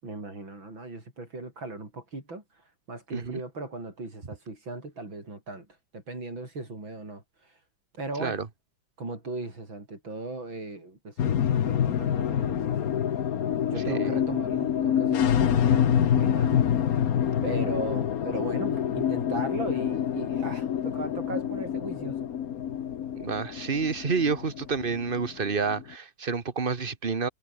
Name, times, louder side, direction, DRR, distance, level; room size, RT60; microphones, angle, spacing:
voice 1, 0.0-5.7 5.9-7.6 8.0-8.4 9.0-12.9 13.7-17.1 17.4-22.3, right 2 dB, 70° right, 7.7 m, -38 dB
sound 1, 11.2-25.8, left 9 dB, 55° left, 1.3 m, -26 dB
voice 2, 23.2-27.3, right 5 dB, 30° right, 1.5 m, -29 dB
omnidirectional pair, 2.2 m